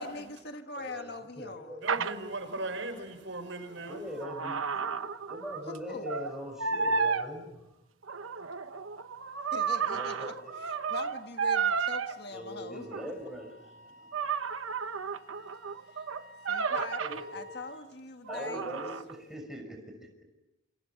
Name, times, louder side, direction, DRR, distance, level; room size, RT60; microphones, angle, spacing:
voice 1, 0.0-1.8 5.7-6.2 9.5-12.9 13.2-13.3 16.0-16.1 16.5-18.9, left 3 dB, 55° left, 6 dB, 1.6 m, -42 dB
voice 2, 0.8-1.8 3.9-7.7 9.9-10.6 12.3-14.1 16.7-17.4 18.3-20.2, equal, ahead, 2 dB, 5.9 m, -42 dB
voice 3, 1.8-4.0, right 2 dB, 70° right, 6 dB, 5.7 m, -38 dB
sound 1, 1.9-2.1 3.7-5.8 6.1-6.3 6.6-7.3 8.0-12.1 12.9-13.1 14.1-17.2 18.3-19.2, right 5 dB, 85° right, 1.1 m, -32 dB
Wind instrument woodwind instrument, 8.3-17.8, right 1 dB, 85° left, 5.9 m, -55 dB
28.0 x 27.5 x 6.0 m, 0.98 s
head